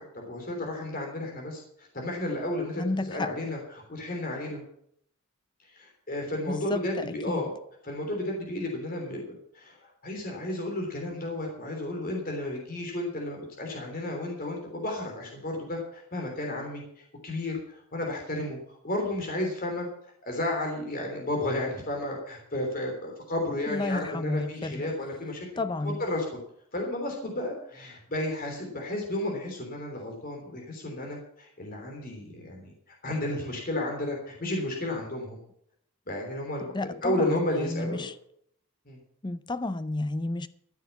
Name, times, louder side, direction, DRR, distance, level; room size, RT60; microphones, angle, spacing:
voice 1, 0.0-4.6 5.7-7.5 7.8-9.2 9.5-16.8 17.2-18.6 18.8-19.9 20.2-25.5 25.8-26.2 26.7-35.4 36.1-38.1 38.8-39.0, left 1 dB, 45° left, 3.3 m, -32 dB
voice 2, 2.8-3.3 6.5-7.4 23.7-24.9 25.6-26.0 36.7-38.1 39.2-40.5, left 2 dB, 20° left, 0.5 m, -31 dB
14.0 x 7.4 x 7.2 m
head